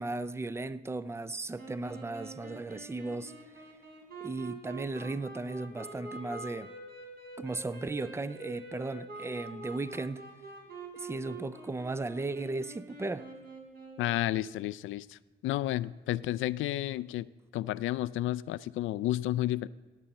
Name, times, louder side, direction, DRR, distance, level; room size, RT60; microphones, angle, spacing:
voice 1, 0.0-3.6 4.2-6.7 7.4-10.2 10.9-13.3, right 3 dB, 15° right, 0.5 m, -36 dB
sound 1, 1.6-14.2, right 2 dB, 55° right, 3.7 m, -46 dB
voice 2, 14.0-17.3 17.5-19.7, left 14 dB, 80° left, 0.4 m, -31 dB
16.0 x 8.9 x 4.3 m
cardioid pair, 90°, 20 cm